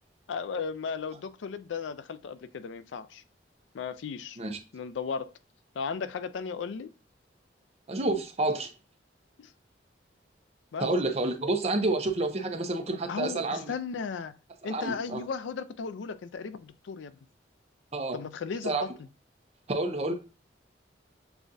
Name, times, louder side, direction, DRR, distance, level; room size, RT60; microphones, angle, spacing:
voice 1, 0.3-3.2 3.7-4.4 4.7-5.3 5.8-6.9 9.4-9.5 10.7-10.9 13.1-14.4 14.6-17.2 18.1-18.9, left 5 dB, 90° left, 0.4 m, -35 dB
voice 2, 7.9-8.7 10.8-13.7 14.7-15.2 17.9-18.2 18.7-18.8 19.7-20.1, right 2 dB, 35° right, 0.6 m, -29 dB
6.9 x 2.4 x 2.6 m
head